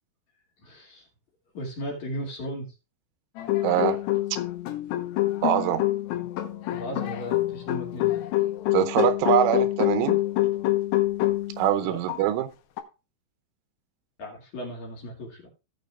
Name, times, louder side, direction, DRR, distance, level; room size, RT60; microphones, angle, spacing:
voice 1, 0.6-1.0 1.5-2.7 6.1-6.2 6.7-8.3 11.8-12.0 14.2-15.4, equal, 45° left, 3.0 m, -36 dB
sound 1, 3.4-11.7 12.1-12.2 12.8-12.9, left 16 dB, 75° left, 2.8 m, -26 dB
voice 2, 3.6-4.0 5.4-5.9 8.7-10.2 11.6-12.5, right 11 dB, 90° right, 3.3 m, -23 dB
17.0 x 6.6 x 2.4 m
omnidirectional pair, 5.5 m